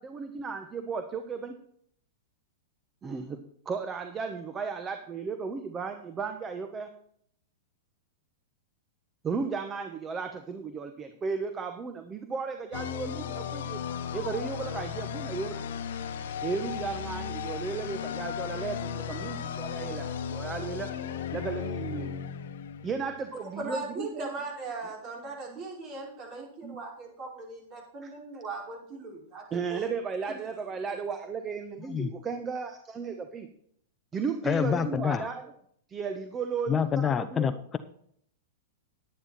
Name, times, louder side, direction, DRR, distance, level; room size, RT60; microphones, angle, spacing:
voice 1, 0.0-1.5 3.0-3.4 3.6-6.9 9.2-13.8 14.1-15.6 16.4-20.9 21.3-22.1 22.8-24.3 25.5-25.6 26.6-26.7 28.0-28.1 29.5-33.5 34.1-35.5 35.9-37.6, right 5 dB, 25° right, 7 dB, 1.2 m, -35 dB
sound 1, 12.7-23.4, left 8 dB, 70° left, 1.0 m, -35 dB
voice 2, 23.6-29.9 30.3-30.4 30.9-31.0, right 3 dB, 40° right, -1 dB, 5.4 m, -39 dB
voice 3, 34.4-35.3 36.7-37.8, left 7 dB, 20° left, 11 dB, 0.7 m, -27 dB
10.5 x 10.0 x 4.3 m, 0.65 s
hypercardioid pair, 115°, 0 cm